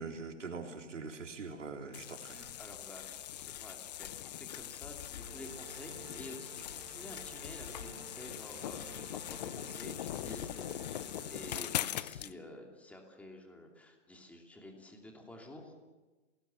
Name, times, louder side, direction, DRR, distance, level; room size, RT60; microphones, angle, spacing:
voice 1, 0.0-2.5, right 4 dB, 75° right, 2 dB, 3.7 m, -43 dB
sound 1, 1.6-3.4, left 5 dB, 60° left, 6.6 m, -63 dB
sound 2, 1.9-12.3, left 12 dB, 35° left, 0.7 m, -41 dB
voice 2, 2.6-15.7, left 1 dB, 5° left, 2 dB, 2.9 m, -51 dB
sound 3, 5.1-12.0, right 4 dB, 50° right, 6.0 m, -52 dB
29.5 x 20.0 x 7.3 m, 1.2 s
hypercardioid pair, 140°, 37 cm